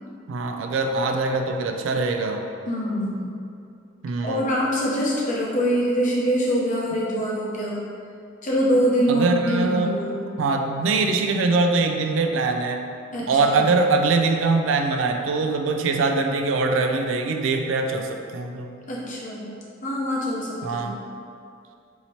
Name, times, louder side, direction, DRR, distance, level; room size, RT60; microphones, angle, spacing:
voice 1, 0.3-2.4 4.0-4.5 9.1-10.0 10.4-12.8 13.3-18.7 20.6-21.0, right 3 dB, 85° right, 5 dB, 0.3 m, -23 dB
voice 2, 2.7-3.3 4.2-7.8 8.4-10.2 13.1-13.6 18.9-19.5 19.8-20.9, equal, 45° left, -5 dB, 0.7 m, -24 dB
2.8 x 2.8 x 4.2 m, 2.5 s
head